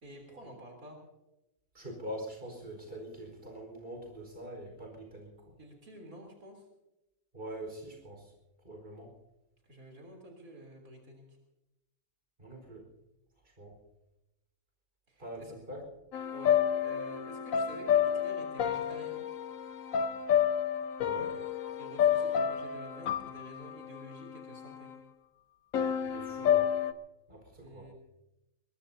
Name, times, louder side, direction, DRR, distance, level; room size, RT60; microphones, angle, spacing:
voice 1, 0.0-1.0 5.6-6.6 9.6-11.2 15.1-15.5 16.3-19.2 21.8-24.9 27.6-27.9, right 1 dB, 85° right, 1 dB, 3.9 m, -50 dB
voice 2, 1.7-5.3 7.3-8.2 8.6-9.1 12.4-12.8 13.6-13.7 15.2-15.8 21.0-21.3 26.0-26.7 27.3-27.9, equal, 40° right, 2 dB, 5.0 m, -43 dB
sound 1, 16.1-25.0 25.7-26.9, left 9 dB, 75° left, 1.2 m, -30 dB
22.5 x 21.5 x 2.8 m, 0.94 s
omnidirectional pair, 1.5 m